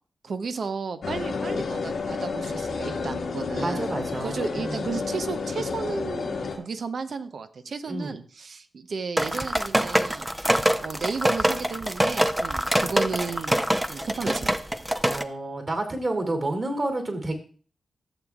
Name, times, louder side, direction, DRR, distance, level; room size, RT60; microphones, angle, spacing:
voice 1, 0.2-3.9 4.2-10.3 10.8-13.6 13.9-14.6, right 4 dB, 65° right, 10 dB, 0.7 m, -33 dB
sound 1, 1.0-6.6, left 4 dB, 80° left, 1.7 m, -30 dB
voice 2, 3.6-4.8 7.9-8.2 15.0-17.3, right 2 dB, 45° right, 4 dB, 2.6 m, -29 dB
sound 2, 9.2-15.2, right 1 dB, 10° right, 0.6 m, -24 dB
15.0 x 7.1 x 2.4 m, 0.42 s
cardioid pair, 50°, 0 cm